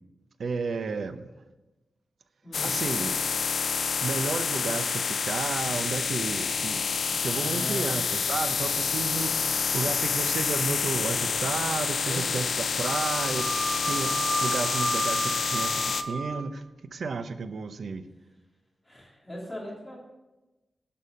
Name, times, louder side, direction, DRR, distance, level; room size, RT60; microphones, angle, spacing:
voice 1, 0.4-1.3 2.6-3.2 4.0-13.4 13.9-16.6 16.9-18.0, right 4 dB, 70° right, 10 dB, 0.6 m, -32 dB
sound 1, 2.5-16.0, left 5 dB, 75° left, 0.5 m, -28 dB
voice 2, 7.3-8.0 12.0-12.5 18.8-20.0, left 1 dB, 5° left, -5 dB, 3.3 m, -39 dB
Wind instrument woodwind instrument, 12.8-16.5, right 2 dB, 50° right, 1.8 m, -31 dB
11.0 x 5.5 x 6.5 m, 1.1 s
wide cardioid pair, 175°, 0 cm